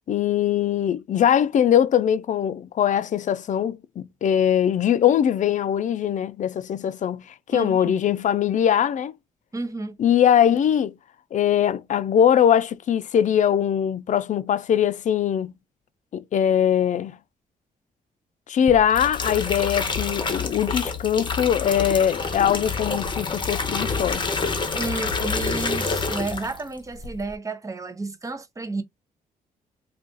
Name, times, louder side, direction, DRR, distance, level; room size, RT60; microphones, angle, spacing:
voice 1, 0.1-9.1 10.0-10.9 11.3-15.5 16.1-17.2 18.5-24.3, left 9 dB, 50° left, 0.5 m, -21 dB
voice 2, 7.5-7.9 9.5-10.0 24.7-28.8, right 3 dB, 20° right, 0.7 m, -31 dB
sound 1, 18.7-26.7 27.0-27.3, left 4 dB, 30° left, 0.9 m, -27 dB
2.5 x 2.4 x 3.8 m
cardioid pair, 75°, 16 cm